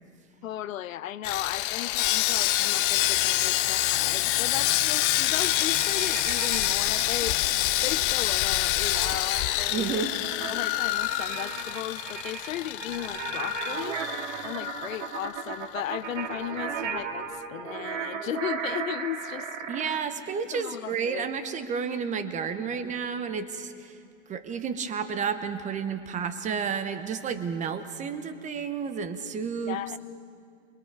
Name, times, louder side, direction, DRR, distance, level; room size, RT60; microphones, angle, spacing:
voice 1, 0.4-7.4 7.8-10.0 10.5-14.0 14.4-19.7 20.5-21.3 29.7-30.0, left 12 dB, 75° left, 16 dB, 0.8 m, -36 dB
Sawing, 1.2-15.5 15.7-15.9 16.4-16.5, left 16 dB, 40° left, 0.8 m, -27 dB
sound 1, 5.3-7.3 8.9-20.0, right 6 dB, 65° right, 2.1 m, -36 dB
voice 2, 9.7-10.1 19.7-24.0 24.3-30.0, right 6 dB, 20° right, 10 dB, 1.0 m, -31 dB
27.0 x 22.0 x 4.8 m, 2.3 s
hypercardioid pair, 130°, 40 cm